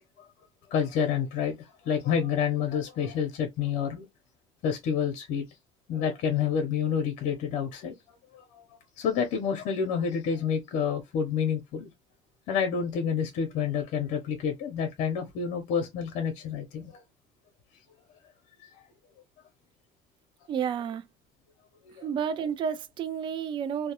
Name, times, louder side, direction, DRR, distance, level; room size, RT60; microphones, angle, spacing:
voice 1, 0.7-1.6 1.9-4.1 4.6-5.4 5.9-7.9 8.3-8.4 9.0-11.9 12.5-16.9 21.9-22.1, left 7 dB, 70° left, 0.6 m, -28 dB
voice 2, 20.5-21.0 22.0-23.9, right 7 dB, 40° right, 0.4 m, -30 dB
2.2 x 2.1 x 2.8 m
cardioid pair, 110°, 13 cm